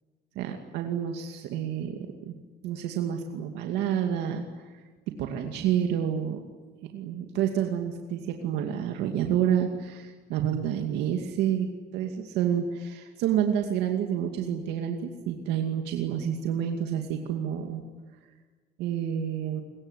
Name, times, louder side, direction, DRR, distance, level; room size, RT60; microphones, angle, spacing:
voice 1, 0.4-2.0 2.3-2.4 2.6-4.4 5.2-6.4 6.9-17.8 18.8-19.6, right 9 dB, 90° right, 4 dB, 2.4 m, -29 dB
23.5 x 22.5 x 9.9 m, 1.4 s
cardioid pair, 110°, 17 cm